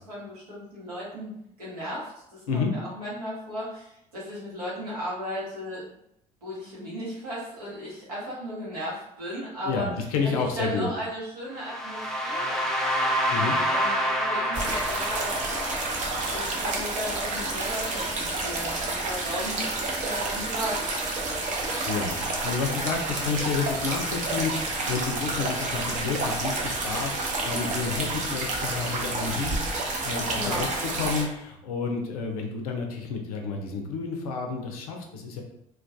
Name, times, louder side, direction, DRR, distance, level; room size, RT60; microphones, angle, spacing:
voice 1, 0.1-1.3 1.6-5.8 6.4-9.9 10.2-13.1 13.7-21.4 30.3-30.7, equal, 85° right, -7 dB, 0.9 m, -36 dB
voice 2, 9.6-10.9 13.3-13.6 21.9-35.4, left 5 dB, 75° left, 2 dB, 0.4 m, -30 dB
sound 1, 11.6-17.5, equal, ahead, 0.5 m, -28 dB
sound 2, 14.5-31.2, right 2 dB, 40° right, 0.6 m, -29 dB
2.2 x 2.2 x 2.5 m, 0.76 s
figure-of-eight pair, 55°, 19 cm